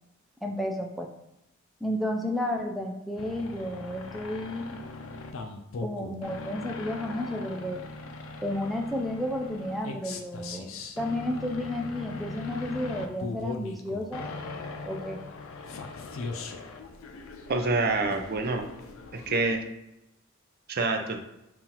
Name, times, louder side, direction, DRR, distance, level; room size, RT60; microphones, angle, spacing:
voice 1, 0.4-1.1 1.8-4.8 5.8-7.8 8.4-10.7 11.0-14.2 14.9-15.2, left 1 dB, ahead, 1 dB, 0.4 m, -32 dB
sound 1, 3.2-19.5, left 3 dB, 70° left, 0.5 m, -40 dB
voice 2, 17.5-18.7 19.1-19.6 20.7-21.2, right 3 dB, 50° right, 5 dB, 0.5 m, -27 dB
5.5 x 2.5 x 2.9 m, 0.89 s
head